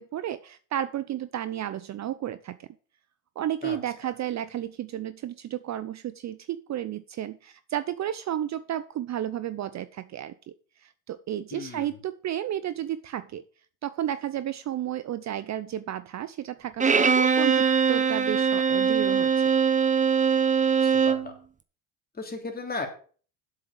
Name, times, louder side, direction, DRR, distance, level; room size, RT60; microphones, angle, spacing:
voice 1, 0.0-2.7 3.4-10.5 10.8-13.4 13.8-19.3, right 11 dB, 40° right, 14 dB, 0.6 m, -32 dB
voice 2, 11.5-12.0 20.8-21.3 22.1-22.9, left 3 dB, 20° left, 3 dB, 3.0 m, -35 dB
Bowed string instrument, 16.8-21.3, right 6 dB, 15° right, 0.9 m, -22 dB
8.0 x 6.6 x 7.0 m, 0.42 s
supercardioid pair, 100°, 44 cm